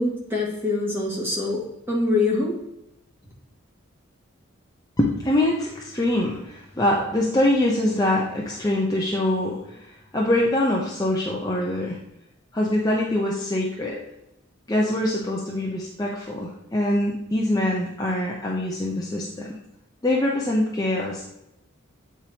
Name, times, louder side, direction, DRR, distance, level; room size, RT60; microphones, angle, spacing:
voice 1, 0.0-2.6, left 2 dB, 10° right, -4 dB, 1.8 m, -24 dB
voice 2, 5.0-9.9 10.1-12.0 12.5-14.0 14.7-19.5 20.0-21.2, left 1 dB, 15° left, -3 dB, 0.7 m, -24 dB
8.6 x 4.7 x 2.9 m, 0.85 s
head